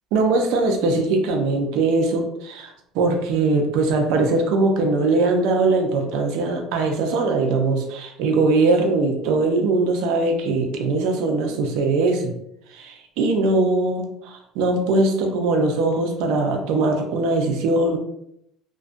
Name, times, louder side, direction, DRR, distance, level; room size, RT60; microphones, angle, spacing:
voice 1, 0.1-12.3 12.7-18.0, right 3 dB, 80° right, 3 dB, 0.5 m, -21 dB
2.3 x 2.2 x 2.5 m, 0.76 s
cardioid pair, 120°, 0 cm